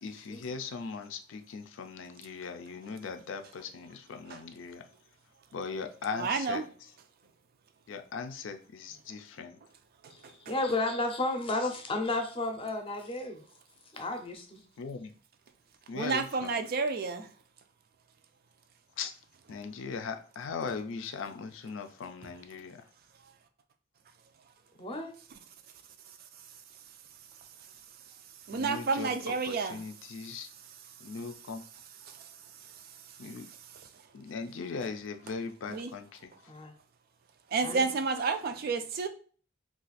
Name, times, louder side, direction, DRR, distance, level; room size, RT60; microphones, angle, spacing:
voice 1, 0.0-4.9 5.5-6.9 7.9-9.6 14.8-15.1 15.9-16.6 19.0-19.1 19.5-22.8 28.5-30.5 31.0-31.6 33.2-33.5 34.1-36.3, left 5 dB, 75° left, 0.4 m, -39 dB
voice 2, 6.2-6.6 15.9-17.3 28.5-29.8 35.7-35.9 37.5-39.1, right 4 dB, 50° right, 0.4 m, -30 dB
voice 3, 10.5-13.4 13.9-14.6 24.8-25.1 36.5-36.7 37.6-37.9, left 2 dB, 30° left, 0.6 m, -32 dB
2.5 x 2.3 x 4.0 m
head